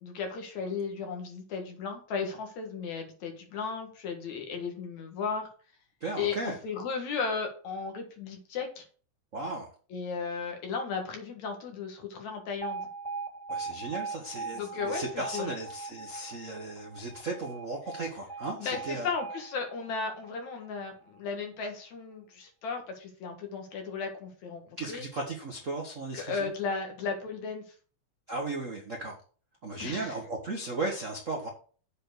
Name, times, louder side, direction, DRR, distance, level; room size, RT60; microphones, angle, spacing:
voice 1, 0.0-5.5 6.2-8.9 9.9-12.8 14.5-15.5 18.6-25.1 26.1-27.6 29.8-30.1, left 5 dB, 65° left, 3 dB, 2.8 m, -35 dB
voice 2, 6.0-6.6 9.3-9.7 13.5-19.1 24.8-26.5 28.3-29.1 29.6-31.5, right 2 dB, 65° right, 0 dB, 0.7 m, -36 dB
Alarm, 12.6-20.7, right 4 dB, ahead, 2.1 m, -40 dB
7.5 x 4.7 x 6.7 m, 0.41 s
omnidirectional pair, 3.6 m